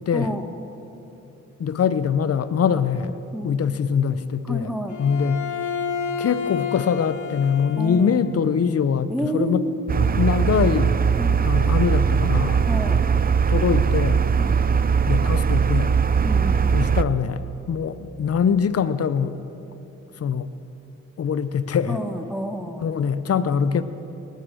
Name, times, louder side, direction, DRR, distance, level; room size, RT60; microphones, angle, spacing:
voice 1, 0.1-0.4 3.3-3.5 4.5-5.0 7.7-8.1 9.1-9.5 11.2-11.4 12.7-13.0 14.4-14.6 16.2-16.7 21.9-22.9, equal, ahead, 5 dB, 1.4 m, -29 dB
voice 2, 1.6-5.4 6.2-9.6 10.2-10.9 11.4-12.6 13.5-14.2 15.1-16.0 16.7-17.4 17.7-19.3 20.2-20.5 21.2-22.0 22.8-23.8, left 7 dB, 50° left, 14 dB, 0.7 m, -23 dB
Bowed string instrument, 4.9-8.3, left 6 dB, 75° left, 1.4 m, -30 dB
sound 1, 9.9-17.0, right 6 dB, 30° right, 0.5 m, -20 dB
19.0 x 9.4 x 6.3 m, 3.0 s
cardioid pair, 65°, 30 cm